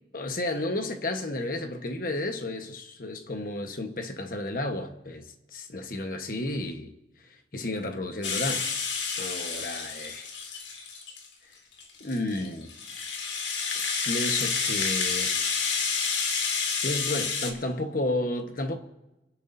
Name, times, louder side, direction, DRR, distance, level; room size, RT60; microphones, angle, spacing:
voice 1, 0.1-6.9 7.3-8.7 9.2-10.3 12.0-12.7 14.0-15.4 16.8-18.8, left 2 dB, 50° left, 1.3 m, -32 dB
Rattle (instrument), 8.2-11.3 11.8-17.5, left 5 dB, 85° left, 2.1 m, -29 dB
29.5 x 11.0 x 2.7 m
head